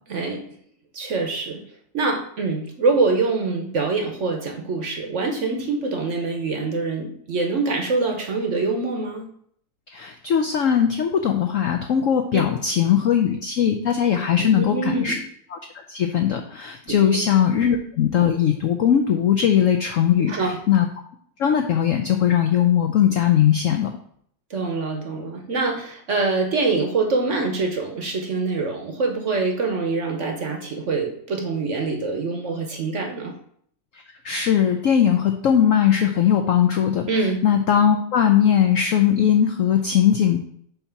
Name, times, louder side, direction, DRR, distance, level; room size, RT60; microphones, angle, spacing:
voice 1, 0.1-0.4 0.9-1.6 1.9-9.2 12.3-12.4 14.4-15.2 16.9-17.2 20.2-20.6 24.5-33.3 37.1-37.4, right 3 dB, 50° right, 3 dB, 1.0 m, -24 dB
voice 2, 9.9-15.1 15.5-15.6 15.9-20.9 21.4-23.9 34.2-40.4, left 9 dB, 75° left, 5 dB, 0.7 m, -19 dB
7.0 x 2.8 x 5.7 m, 0.64 s
omnidirectional pair, 2.0 m